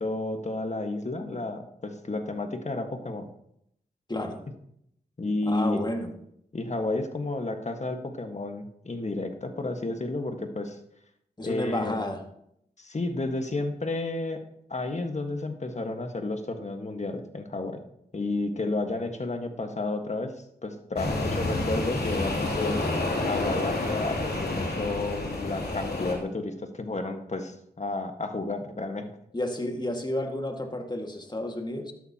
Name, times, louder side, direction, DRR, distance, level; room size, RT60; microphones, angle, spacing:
voice 1, 0.0-3.3 5.2-5.8 6.5-10.8 11.4-12.0 12.8-14.4 14.7-17.8 18.1-20.3 20.6-22.8 23.3-29.1, left 2 dB, 45° left, 6 dB, 1.5 m, -31 dB
voice 2, 4.1-4.4 5.4-6.1 11.4-12.2 29.3-31.9, left 1 dB, 25° left, 3 dB, 1.9 m, -31 dB
sound 1, 21.0-26.1, left 2 dB, 70° left, 3.0 m, -29 dB
12.5 x 11.0 x 2.9 m, 0.75 s
cardioid pair, 40°, 17 cm